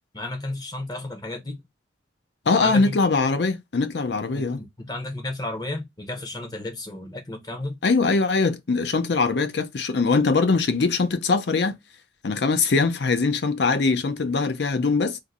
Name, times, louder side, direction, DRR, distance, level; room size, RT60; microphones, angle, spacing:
voice 1, 0.1-1.6 2.6-3.0 4.3-7.8, left 2 dB, 20° left, 0.7 m, -33 dB
voice 2, 2.5-4.6 7.8-11.8 12.2-15.2, left 4 dB, 60° left, 0.5 m, -22 dB
2.6 x 2.6 x 4.0 m
head